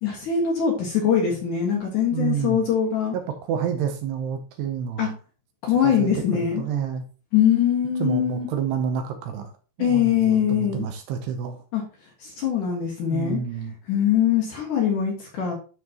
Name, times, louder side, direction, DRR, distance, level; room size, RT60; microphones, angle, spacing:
voice 1, 0.0-3.2 5.0-5.1 5.6-6.6 7.3-8.5 9.8-10.9 11.7-11.8 12.2-13.4 13.9-15.5, left 8 dB, 60° left, -1 dB, 2.5 m, -22 dB
voice 2, 2.1-2.6 3.1-5.1 5.8-7.1 8.0-9.5 9.8-11.6 13.1-13.7, right 8 dB, 75° right, 6 dB, 2.7 m, -29 dB
12.0 x 4.2 x 2.9 m, 0.36 s
omnidirectional pair, 5.2 m